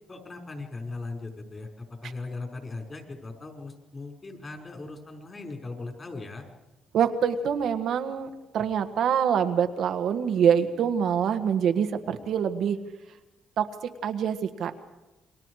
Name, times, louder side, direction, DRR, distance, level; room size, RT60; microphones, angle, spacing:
voice 1, 0.1-6.4, left 3 dB, 30° left, 3 dB, 5.3 m, -39 dB
voice 2, 6.9-12.8 13.6-13.7 14.0-14.7, right 8 dB, 70° right, 7 dB, 1.5 m, -25 dB
28.5 x 22.5 x 4.9 m, 1.1 s
cardioid pair, 90°, 0 cm